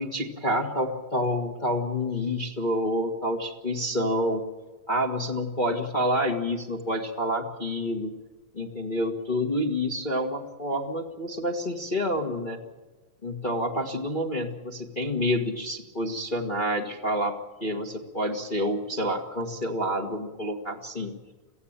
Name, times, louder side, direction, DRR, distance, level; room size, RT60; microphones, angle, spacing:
voice 1, 0.0-4.4 4.9-8.1 8.5-12.6 13.2-21.1, equal, 70° left, 1 dB, 0.4 m, -28 dB
24.5 x 16.0 x 8.9 m, 1.2 s
omnidirectional pair, 3.9 m